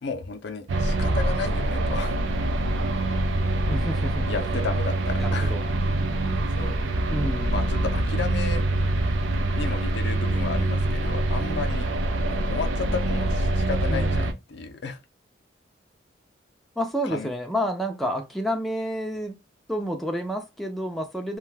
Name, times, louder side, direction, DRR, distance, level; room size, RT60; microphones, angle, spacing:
voice 1, 0.0-2.2 4.3-5.5 6.5-6.8 7.4-8.9 9.5-11.9 12.3-15.0 17.1-17.3, left 5 dB, 60° left, 0.5 m, -33 dB
sound 1, 0.7-14.3, right 1 dB, 75° right, 0.4 m, -25 dB
voice 2, 3.7-4.3 5.2-5.6 7.1-7.6 13.9-14.3 16.8-19.4 19.7-21.4, equal, ahead, 0.4 m, -29 dB
2.5 x 2.2 x 3.2 m
head